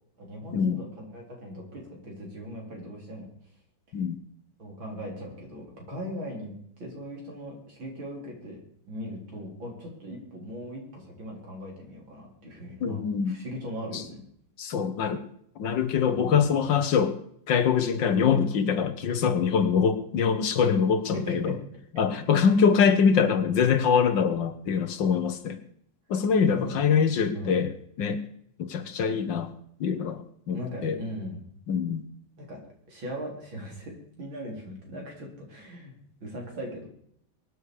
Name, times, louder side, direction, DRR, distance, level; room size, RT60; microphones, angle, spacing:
voice 1, 0.2-3.3 4.6-8.6 8.9-13.0 13.3-14.2 16.1-16.5 21.1-21.5 22.5-22.7 26.5-26.8 27.3-27.6 30.5-31.5 32.4-32.6 32.9-35.9 36.2-36.9, equal, 80° right, 0 dB, 5.0 m, -39 dB
voice 2, 12.8-13.3 13.9-14.0 14.6-15.2 15.6-17.2 17.5-21.6 21.9-25.6 26.1-28.2 28.6-29.5 29.8-31.0 31.7-32.0, left 6 dB, 70° left, 11 dB, 1.8 m, -24 dB
22.5 x 9.9 x 5.0 m, 0.69 s
omnidirectional pair, 2.1 m